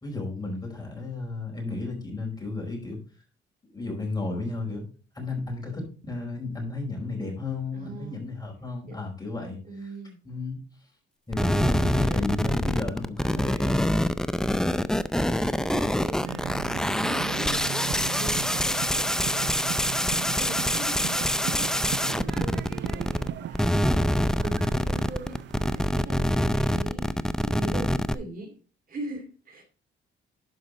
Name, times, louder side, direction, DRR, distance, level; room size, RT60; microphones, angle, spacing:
voice 1, 0.0-3.0 3.6-4.9 5.1-9.6 10.2-10.6 11.3-14.1, left 3 dB, 20° left, 1 dB, 4.6 m, -33 dB
voice 2, 7.7-8.3 8.9-9.1 9.6-10.2 11.9-12.3 14.4-16.5 17.0-28.5 28.9-29.6, right 2 dB, 45° right, 4 dB, 2.5 m, -41 dB
sound 1, 11.3-23.3 23.5-28.1, equal, 5° left, 0.5 m, -25 dB
sound 2, 16.2-25.9, right 10 dB, 65° right, 0.5 m, -37 dB
11.5 x 5.3 x 4.0 m, 0.37 s
cardioid pair, 90°, 20 cm